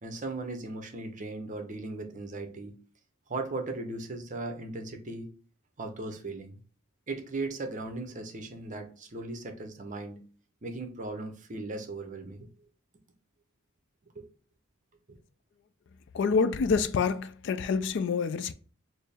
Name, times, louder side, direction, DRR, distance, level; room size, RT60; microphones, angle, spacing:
voice 1, 0.0-2.8 3.3-5.3 5.8-6.6 7.1-10.2 10.6-12.5 14.2-14.3, right 2 dB, 40° right, 0.7 m, -37 dB
voice 2, 16.1-18.5, left 5 dB, 60° left, 0.3 m, -27 dB
4.4 x 2.0 x 3.4 m
head